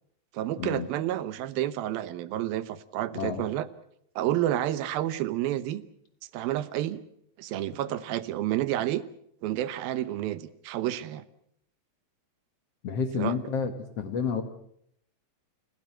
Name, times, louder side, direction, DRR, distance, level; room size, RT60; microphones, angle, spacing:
voice 1, 0.3-3.7 4.2-5.8 6.3-7.0 7.4-9.0 9.4-11.2 13.2-13.4, right 13 dB, 85° right, 14 dB, 2.9 m, -30 dB
voice 2, 3.1-3.5 12.8-14.4, left 6 dB, 55° left, 8 dB, 2.0 m, -30 dB
30.0 x 17.0 x 7.6 m, 0.71 s
omnidirectional pair, 4.1 m